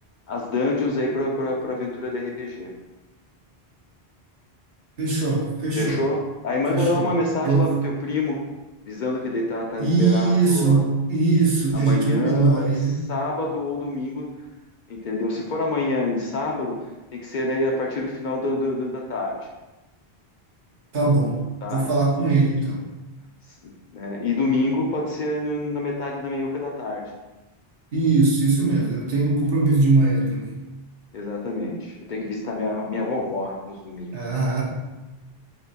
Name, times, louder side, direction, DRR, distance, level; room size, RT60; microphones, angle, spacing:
voice 1, 0.3-2.7 5.8-8.4 8.8-10.8 11.7-14.3 14.9-16.8 17.1-19.4 21.6-21.8 23.6-27.1 31.1-34.2, left 2 dB, 55° left, -1 dB, 0.6 m, -27 dB
voice 2, 5.0-6.0 6.7-7.1 7.4-7.7 9.8-13.0 20.9-21.4 21.7-22.8 27.9-30.5 34.1-34.6, right 3 dB, 70° right, -3 dB, 1.1 m, -21 dB
4.2 x 2.9 x 2.8 m, 1.1 s
omnidirectional pair, 1.0 m